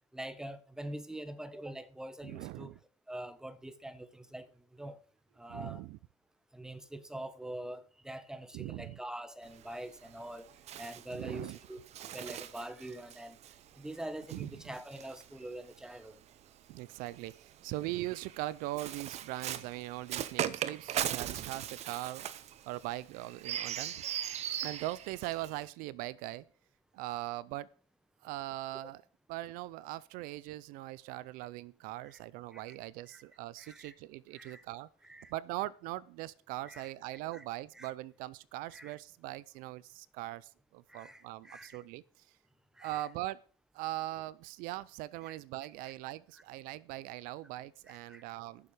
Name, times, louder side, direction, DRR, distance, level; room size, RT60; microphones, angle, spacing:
voice 1, 0.1-2.7 3.1-5.0 5.4-5.8 6.5-11.8 12.1-13.4 13.8-16.2 32.0-32.2 32.5-32.7 33.1-33.2 33.6-33.9 34.3-34.6 35.0-35.3 36.7-36.9 37.3-37.4 37.7-37.9 38.7-38.9 40.9-41.8 42.8-43.1 45.2-45.4 45.8-45.9 47.9-48.2, right 1 dB, 5° right, 1.1 m, -44 dB
voice 2, 2.2-2.7 5.5-6.0 8.5-9.0 11.1-11.6 14.3-14.5 16.7-22.2 22.6-24.0 24.6-26.5 26.9-27.7 28.2-29.0 29.3-34.9 35.3-42.3 42.8-43.4 43.7-48.7, right 17 dB, 70° right, 0.5 m, -41 dB
Bird, 9.4-16.0 16.9-25.7, right 10 dB, 45° right, 0.8 m, -40 dB
14.5 x 7.0 x 4.9 m
supercardioid pair, 110°, 15 cm